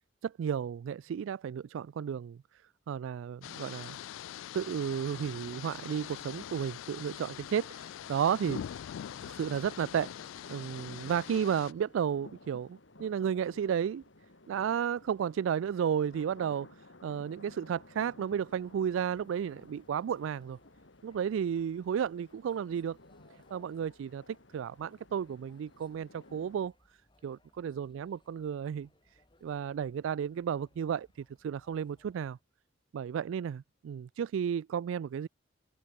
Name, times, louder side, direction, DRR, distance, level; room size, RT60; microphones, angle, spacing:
voice 1, 0.2-2.4 2.9-4.0 4.5-8.8 9.2-10.1 10.5-14.0 14.5-16.7 17.0-20.6 21.0-23.0 23.5-24.2 24.5-26.7 27.2-28.9 29.4-32.4 32.9-35.3, right 8 dB, 85° right, 0.3 m, -33 dB
sound 1, 3.4-11.7, left 10 dB, 90° left, 0.3 m, -43 dB
sound 2, 7.5-26.7, left 2 dB, 75° left, 2.8 m, -56 dB
sound 3, 18.5-32.4, left 1 dB, 25° left, 3.1 m, -68 dB
open air
head